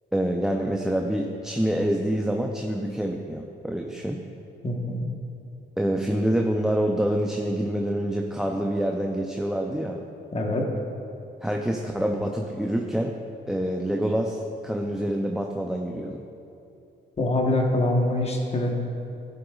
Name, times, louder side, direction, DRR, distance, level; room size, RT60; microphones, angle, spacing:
voice 1, 0.1-4.2 5.8-10.0 11.4-13.1 13.5-16.2, right 1 dB, 5° right, 1 dB, 0.5 m, -26 dB
voice 2, 4.6-5.1 10.3-10.7 17.2-18.8, left 1 dB, 30° left, 1 dB, 1.2 m, -24 dB
11.0 x 7.9 x 2.4 m, 2.7 s
cardioid pair, 90°, 20 cm